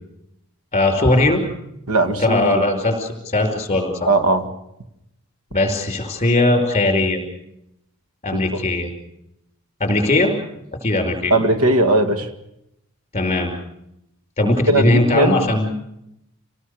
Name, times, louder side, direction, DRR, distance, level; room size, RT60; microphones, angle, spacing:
voice 1, 0.7-1.4 2.2-4.1 5.5-7.2 8.2-8.9 9.8-10.3 10.8-11.3 13.1-13.5 14.4-15.7, left 2 dB, 30° left, 4 dB, 5.2 m, -19 dB
voice 2, 1.9-2.7 4.1-4.5 8.3-8.6 11.3-12.3 14.4-15.4, right 2 dB, 85° right, 8 dB, 2.1 m, -18 dB
27.5 x 18.5 x 6.8 m, 0.83 s
head